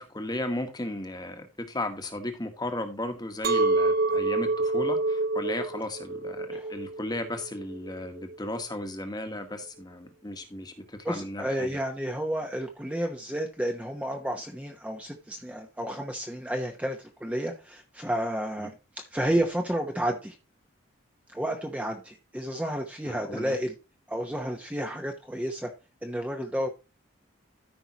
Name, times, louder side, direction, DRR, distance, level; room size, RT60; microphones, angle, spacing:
voice 1, 0.0-11.8 18.6-18.7 23.1-23.6, left 1 dB, 20° left, 6 dB, 1.3 m, -35 dB
Chink clink, 3.4-8.6, right 2 dB, 45° right, 0.5 m, -27 dB
voice 2, 11.0-18.7 19.1-20.3 21.3-23.7 24.1-25.7 26.0-26.7, equal, 5° right, 3 dB, 0.8 m, -31 dB
13.5 x 5.5 x 2.9 m, 0.29 s
head